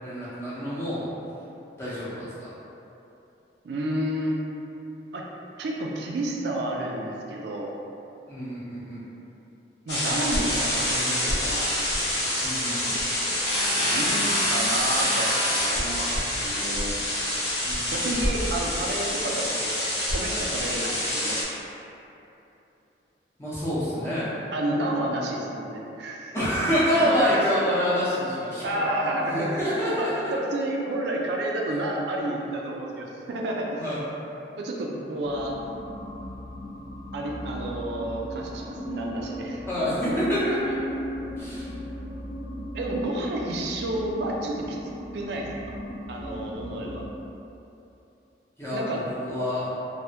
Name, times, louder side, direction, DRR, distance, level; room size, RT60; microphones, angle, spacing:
voice 1, 0.0-1.1 1.8-2.5 8.3-9.0 12.4-13.0 17.6-17.9 23.4-24.3 26.3-28.6 29.3-30.4 33.8-34.0 39.7-41.0 41.3-41.7 48.6-49.7, equal, 15° left, -11 dB, 0.8 m, -27 dB
voice 2, 3.6-4.4 5.1-5.3 5.6-7.7 9.9-11.8 13.8-16.1 16.4-17.1 17.9-19.7 20.1-21.4 24.5-26.5 26.9-27.4 28.5-33.8 34.6-35.6 37.1-39.9 42.7-44.8 45.1-45.7 46.1-47.0 48.7-49.1, right 1 dB, 75° right, -1 dB, 0.3 m, -30 dB
sound 1, 9.9-21.4, left 1 dB, 75° left, 0.8 m, -26 dB
sound 2, 35.2-47.1, equal, 50° left, 0.6 m, -37 dB
3.3 x 2.1 x 2.7 m, 2.9 s
head